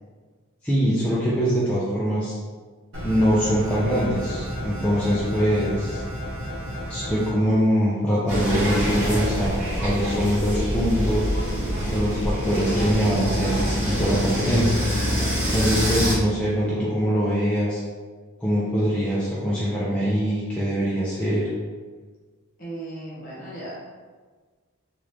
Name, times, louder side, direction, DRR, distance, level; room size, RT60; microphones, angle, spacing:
voice 1, 0.6-2.4 3.0-6.0 6.9-11.3 11.9-14.8 15.5-17.8 18.4-21.5, equal, 5° left, -9 dB, 0.4 m, -23 dB
sound 1, 2.9-7.3, equal, 60° right, 0.9 m, -32 dB
sound 2, 8.3-16.1, equal, 35° right, 1.2 m, -25 dB
voice 2, 22.6-23.8, right 1 dB, 40° left, -7 dB, 1.1 m, -37 dB
3.0 x 2.4 x 3.3 m, 1.4 s
head